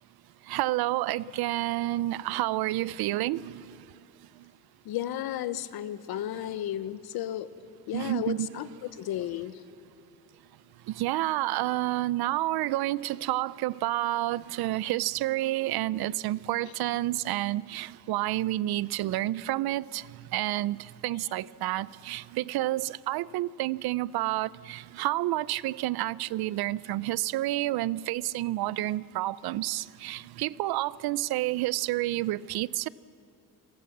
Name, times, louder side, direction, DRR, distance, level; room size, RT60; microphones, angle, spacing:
voice 1, 0.5-3.7 7.9-8.6 11.0-20.0 20.3-32.9, right 16 dB, 90° right, 0.6 m, -29 dB
voice 2, 4.8-7.5 7.9-8.7 9.0-9.6, left 12 dB, 80° left, 1.1 m, -33 dB
28.5 x 23.0 x 7.3 m
cardioid pair, 155°, 36 cm